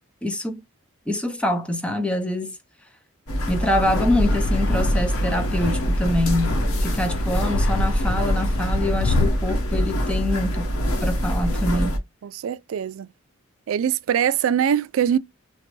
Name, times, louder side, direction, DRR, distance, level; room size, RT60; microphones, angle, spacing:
voice 1, 0.2-0.6 1.1-2.5 3.5-10.7 11.0-12.0, left 1 dB, 5° left, 0.6 m, -25 dB
sound 1, 3.3-12.0, equal, 85° left, 1.1 m, -24 dB
Fixed-wing aircraft airplane, 3.8-9.3, left 2 dB, 65° left, 0.5 m, -27 dB
voice 2, 12.2-13.1 13.7-15.2, right 9 dB, 70° right, 0.3 m, -22 dB
3.9 x 2.1 x 3.0 m
head